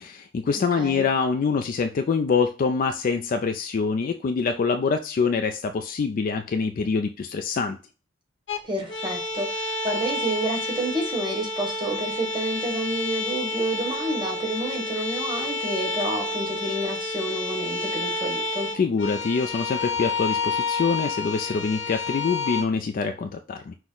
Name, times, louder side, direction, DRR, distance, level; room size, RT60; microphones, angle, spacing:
voice 1, 0.0-7.8 18.7-23.7, left 5 dB, 45° left, 6 dB, 0.3 m, -25 dB
sound 1, 8.5-8.6 8.9-22.6, left 3 dB, 65° left, 0.7 m, -29 dB
voice 2, 8.6-18.7, right 1 dB, 25° right, 0 dB, 1.2 m, -29 dB
6.0 x 2.1 x 3.7 m, 0.34 s
head